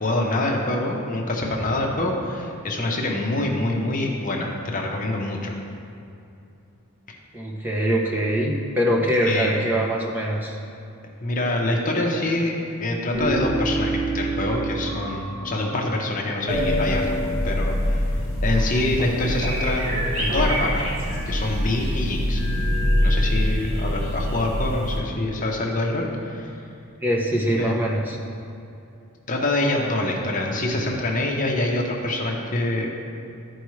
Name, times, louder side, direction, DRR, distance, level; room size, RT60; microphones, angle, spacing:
voice 1, 0.0-5.5 7.1-7.2 9.1-9.6 11.2-18.1 18.4-20.8 21.3-22.4 23.0-26.5 27.5-27.7 29.3-33.0, left 1 dB, 35° left, 0 dB, 0.8 m, -25 dB
voice 2, 7.3-10.6 27.0-28.2, right 1 dB, 10° right, -3 dB, 0.7 m, -23 dB
sound 1, 13.1-16.1 16.5-18.3 18.6-18.7 19.0-19.2 19.4-19.6 19.9-21.6 22.3-23.9 24.6-25.6, right 1 dB, 30° right, 1.6 m, -30 dB
sound 2, 16.5-25.0, equal, 85° right, 1.8 m, -25 dB
12.0 x 4.6 x 3.2 m, 2.7 s
head